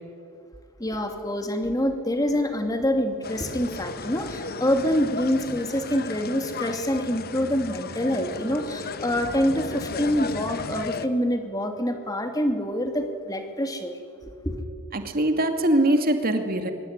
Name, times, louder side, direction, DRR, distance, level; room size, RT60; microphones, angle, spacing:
voice 1, 0.8-14.0 14.3-14.6, equal, 15° left, 5 dB, 2.7 m, -26 dB
sound 1, 3.2-11.1, left 4 dB, 45° left, 1.1 m, -35 dB
voice 2, 14.9-16.7, right 1 dB, 40° right, 6 dB, 2.6 m, -22 dB
24.5 x 23.0 x 9.9 m, 2.3 s
head